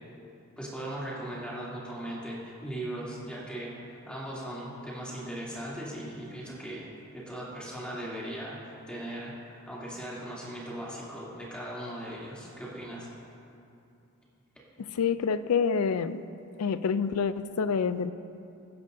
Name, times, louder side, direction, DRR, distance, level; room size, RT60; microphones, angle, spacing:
voice 1, 0.6-6.9 7.1-13.1, right 1 dB, 5° left, -8 dB, 2.8 m, -38 dB
voice 2, 15.0-16.2 16.6-18.1, left 6 dB, 80° left, 13 dB, 0.4 m, -27 dB
22.0 x 10.5 x 2.7 m, 2.7 s
head